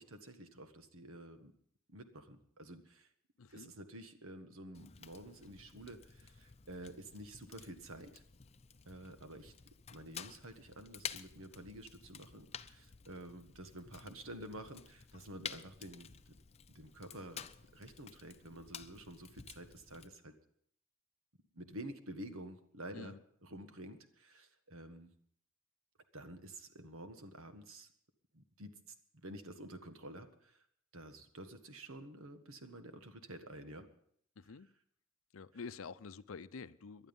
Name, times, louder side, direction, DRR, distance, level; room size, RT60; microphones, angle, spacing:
voice 1, 0.0-1.5 1.9-3.1 3.5-8.2 8.9-9.5 9.9-16.1 16.7-17.4 17.7-20.3 21.5-23.1 23.4-25.1 26.1-27.9 28.3-28.8 29.2-30.6 30.9-33.9, right 1 dB, 85° right, 1.6 m, -50 dB
voice 2, 3.4-3.7 22.9-23.2 34.4-34.7 35.3-37.1, left 5 dB, 80° left, 0.6 m, -48 dB
Fire, 4.7-20.1, left 7 dB, 30° left, 0.6 m, -51 dB
19.0 x 11.5 x 5.4 m
head